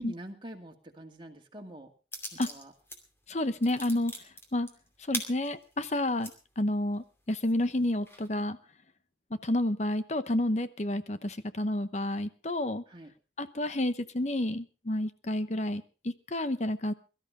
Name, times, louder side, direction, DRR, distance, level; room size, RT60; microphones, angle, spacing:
voice 1, 0.0-1.9 2.5-2.7 12.9-13.1, right 1 dB, 30° right, 2 dB, 2.3 m, -44 dB
sound 1, 2.1-3.0 3.3-6.3 6.9-7.0 7.4-8.3, left 1 dB, 15° left, 2.6 m, -40 dB
voice 2, 3.3-4.1 4.5-4.7 5.1-6.3 6.6-8.6 9.3-12.8 13.4-16.9, left 1 dB, 40° left, 12 dB, 0.9 m, -30 dB
22.5 x 13.0 x 3.7 m, 0.34 s
head